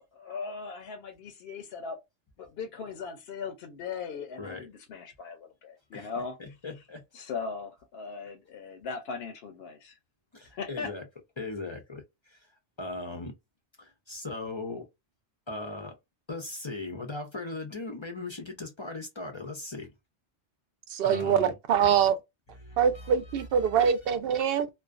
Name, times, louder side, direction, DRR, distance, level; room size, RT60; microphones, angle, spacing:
voice 1, 0.0-2.0 2.4-6.4 7.1-10.0 10.5-10.9, left 5 dB, 70° left, 0.8 m, -38 dB
voice 2, 6.4-7.0 10.3-11.1 11.4-12.5 12.8-13.3 13.8-14.9 15.5-16.0 16.3-19.9 21.0-21.5 21.9-22.1 22.6-23.8 24.5-24.6, left 2 dB, 35° left, 0.5 m, -39 dB
voice 3, 20.9-22.2 22.8-24.7, right 8 dB, 65° right, 0.7 m, -24 dB
2.4 x 2.2 x 2.4 m
omnidirectional pair, 1.1 m